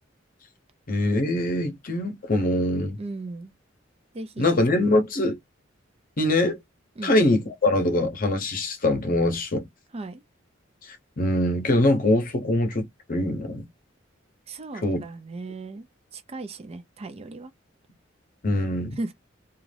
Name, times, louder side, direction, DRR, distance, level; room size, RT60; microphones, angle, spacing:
voice 1, 0.9-3.0 4.4-5.4 6.2-6.6 7.0-9.6 11.2-13.7 14.8-15.0 18.4-19.0, left 1 dB, 45° left, 0.8 m, -23 dB
voice 2, 3.0-3.5 4.1-4.5 7.0-7.1 9.9-10.2 14.5-15.9 16.1-17.5 19.0-19.1, right 2 dB, 30° right, 0.4 m, -36 dB
2.5 x 2.4 x 3.2 m
head